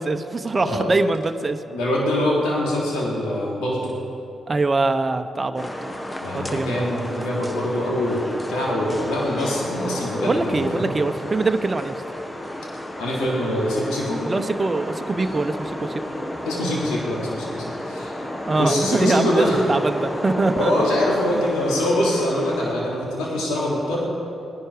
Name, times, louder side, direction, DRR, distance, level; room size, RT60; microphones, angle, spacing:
voice 1, 0.0-1.6 4.5-5.9 6.3-7.2 10.3-12.0 14.3-16.0 18.5-20.7 21.3-21.4, right 3 dB, 35° right, 7 dB, 0.9 m, -23 dB
voice 2, 1.7-3.9 6.2-10.9 13.0-14.2 16.4-18.1 18.6-19.6 20.5-24.1, left 1 dB, 80° left, -4 dB, 3.3 m, -24 dB
sound 1, 5.6-22.7, left 1 dB, 20° left, 1.5 m, -32 dB
19.0 x 11.0 x 5.0 m, 2.9 s
hypercardioid pair, 45°, 0 cm